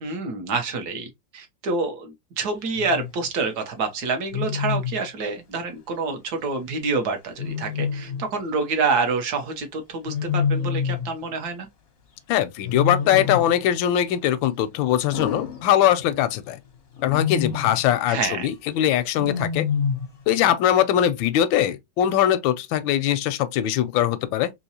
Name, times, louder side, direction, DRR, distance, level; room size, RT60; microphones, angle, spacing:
voice 1, 0.0-11.7 18.1-18.5, right 4 dB, 60° right, 1.4 m, -27 dB
Wild animals, 2.7-3.1 4.3-5.0 7.4-8.3 10.1-11.1 12.6-13.6 15.1-16.2 17.0-17.8 19.1-20.2, left 6 dB, 50° left, 0.7 m, -27 dB
voice 2, 12.3-16.6 17.0-19.7 20.3-24.5, left 11 dB, 85° left, 1.3 m, -21 dB
3.7 x 2.9 x 2.8 m
omnidirectional pair, 2.1 m